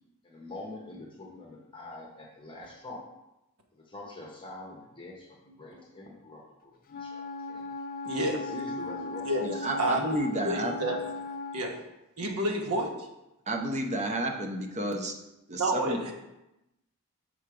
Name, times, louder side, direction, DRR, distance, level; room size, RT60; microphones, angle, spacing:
voice 1, 0.2-3.0 3.7-7.7 8.3-9.4 10.9-11.0, left 2 dB, 20° left, -2 dB, 0.8 m, -45 dB
Wind instrument woodwind instrument, 6.9-11.7, left 3 dB, 40° left, 0.4 m, -37 dB
voice 2, 8.0-8.4 9.2-9.4 9.8-10.0 10.4-11.0 11.5-11.8 12.2-13.1 15.6-16.1, right 1 dB, 85° right, 2 dB, 1.1 m, -29 dB
voice 3, 9.4-10.9 13.5-15.1 15.5-16.0, right 1 dB, 30° right, 3 dB, 0.7 m, -31 dB
6.4 x 3.7 x 4.7 m, 0.92 s
head